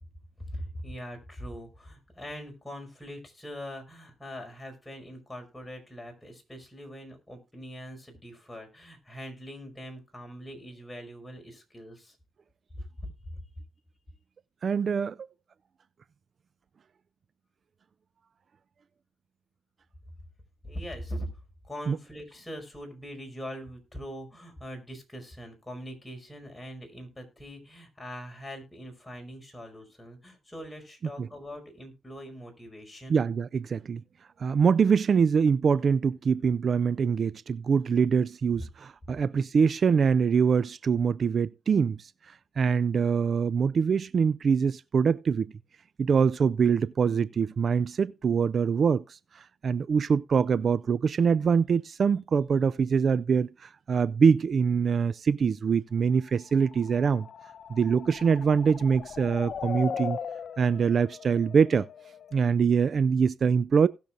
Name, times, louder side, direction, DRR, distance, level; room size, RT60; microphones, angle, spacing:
voice 1, 0.4-12.2 13.0-13.4 20.6-21.3 21.6-33.2 38.6-38.7, equal, 15° left, 5.2 m, -42 dB
voice 2, 14.6-15.2 21.9-22.0 31.2-31.3 33.1-34.0 34.4-42.1 42.6-45.5 46.0-57.3 57.7-60.2 60.6-61.9 62.3-63.9, right 6 dB, 55° right, 0.4 m, -24 dB
sound 1, 56.6-62.4, left 7 dB, 60° left, 0.6 m, -39 dB
18.5 x 6.8 x 2.5 m
cardioid pair, 70°, 0 cm